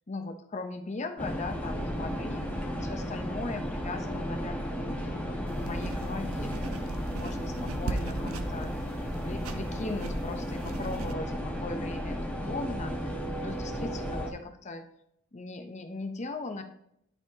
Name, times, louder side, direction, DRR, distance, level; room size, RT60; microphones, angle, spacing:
voice 1, 0.1-2.5 2.8-6.6 7.1-7.5 7.8-8.7 9.2-14.8 15.3-16.6, left 3 dB, 35° left, 6 dB, 0.7 m, -39 dB
sound 1, 1.2-14.3, equal, 5° left, 1.0 m, -34 dB
sound 2, 5.5-11.1, right 3 dB, 80° right, 0.6 m, -39 dB
11.5 x 4.1 x 2.7 m, 0.75 s
head